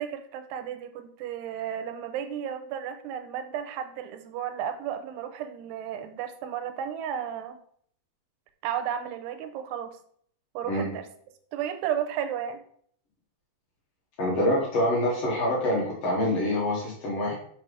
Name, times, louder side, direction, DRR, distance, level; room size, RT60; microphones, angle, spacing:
voice 1, 0.0-7.6 8.6-9.9 10.6-11.0 11.5-12.6, right 9 dB, 85° right, 8 dB, 2.7 m, -33 dB
voice 2, 14.2-17.3, left 1 dB, 55° left, -4 dB, 1.9 m, -26 dB
5.8 x 5.4 x 3.3 m, 0.62 s
omnidirectional pair, 4.7 m